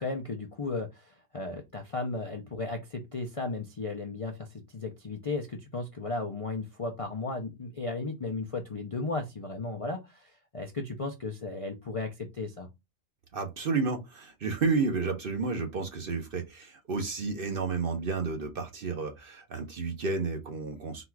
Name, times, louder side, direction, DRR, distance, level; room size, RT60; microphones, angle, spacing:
voice 1, 0.0-12.7, left 3 dB, 45° left, 0.4 m, -35 dB
voice 2, 13.3-21.0, right 4 dB, 50° right, 0.8 m, -31 dB
3.9 x 2.4 x 4.5 m
omnidirectional pair, 1.4 m